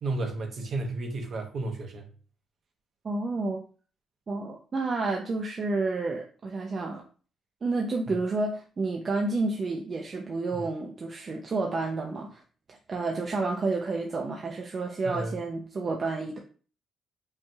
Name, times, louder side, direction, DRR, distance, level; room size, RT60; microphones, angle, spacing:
voice 1, 0.0-2.1 10.5-10.6 15.0-15.4, right 2 dB, 55° right, 3 dB, 1.0 m, -32 dB
voice 2, 3.0-3.6 4.3-7.0 7.6-12.4 12.7-16.4, right 3 dB, 40° right, 1 dB, 0.6 m, -30 dB
5.4 x 2.8 x 2.4 m, 0.39 s
cardioid pair, 90°, 0 cm